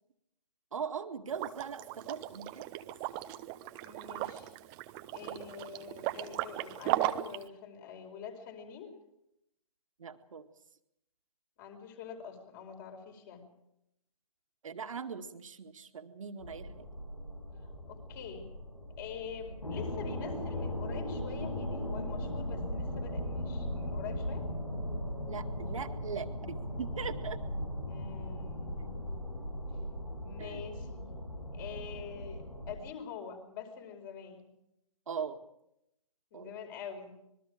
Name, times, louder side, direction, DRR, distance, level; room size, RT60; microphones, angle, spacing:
voice 1, 0.7-2.7 10.0-10.5 14.6-16.9 20.1-20.4 25.3-27.4 30.4-30.6 35.1-35.4 36.3-36.5, right 6 dB, 60° right, 7 dB, 2.0 m, -40 dB
Liquid, 1.3-7.4, right 15 dB, 20° right, 0.9 m, -36 dB
voice 2, 3.8-4.5 5.1-9.0 11.6-13.4 17.9-18.5 19.0-24.4 27.9-29.3 30.2-31.1 31.5-34.5 36.3-37.2, left 7 dB, 35° left, 5 dB, 5.0 m, -45 dB
sound 1, 16.4-32.7, left 1 dB, 90° left, 6.8 m, -38 dB
26.5 x 22.0 x 5.0 m, 0.81 s
figure-of-eight pair, 135°, 19 cm